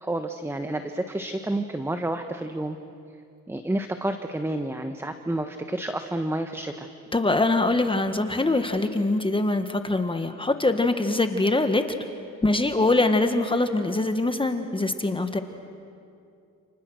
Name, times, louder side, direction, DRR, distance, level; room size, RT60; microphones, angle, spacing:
voice 1, 0.0-2.8 3.5-6.9, right 1 dB, 10° right, 7 dB, 1.2 m, -30 dB
voice 2, 7.1-11.8 12.4-15.4, left 2 dB, 15° left, 7 dB, 1.5 m, -23 dB
30.0 x 29.5 x 6.4 m, 2.5 s
cardioid pair, 90°, 30 cm